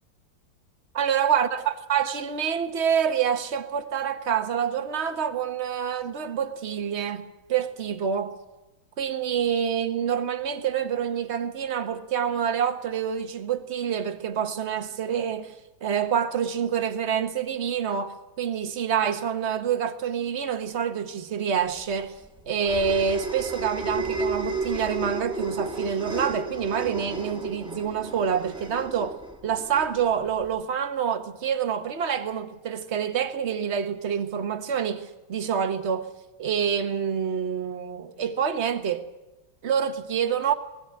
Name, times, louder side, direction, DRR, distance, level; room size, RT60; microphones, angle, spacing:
voice 1, 0.9-8.3 9.0-15.5 15.8-22.2 22.5-29.2 29.4-36.1 36.4-39.0 39.6-40.5, right 8 dB, 40° right, 1.3 m, -27 dB
sound 1, 21.8-30.6, right 2 dB, ahead, 1.9 m, -33 dB
20.5 x 14.5 x 9.7 m
omnidirectional pair, 2.2 m